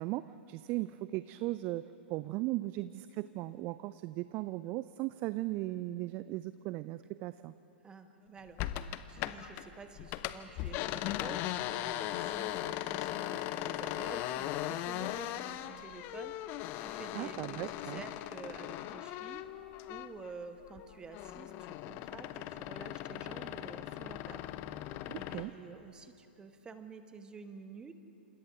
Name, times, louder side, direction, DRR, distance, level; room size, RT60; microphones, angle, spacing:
voice 1, 0.0-7.5 17.1-18.0 25.1-25.5, right 17 dB, 30° right, 15 dB, 0.4 m, -37 dB
voice 2, 7.8-8.6 9.1-19.4 19.9-24.5 25.1-27.9, right 4 dB, 15° right, 9 dB, 1.2 m, -50 dB
sound 1, 8.6-9.7 10.0-20.3 20.7-25.5, left 13 dB, 35° left, 0.7 m, -38 dB
29.5 x 27.0 x 3.8 m, 2.8 s
figure-of-eight pair, 105°, 6 cm